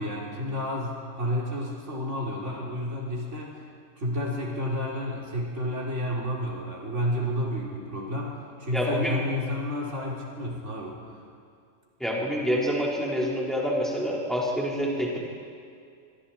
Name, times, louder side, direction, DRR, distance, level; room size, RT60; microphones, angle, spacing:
voice 1, 0.0-3.5 4.0-11.0, left 1 dB, 70° right, -3 dB, 3.8 m, -30 dB
voice 2, 8.7-9.2 12.0-15.2, equal, ahead, -4 dB, 4.1 m, -27 dB
27.0 x 23.0 x 4.4 m, 2.3 s
omnidirectional pair, 1.3 m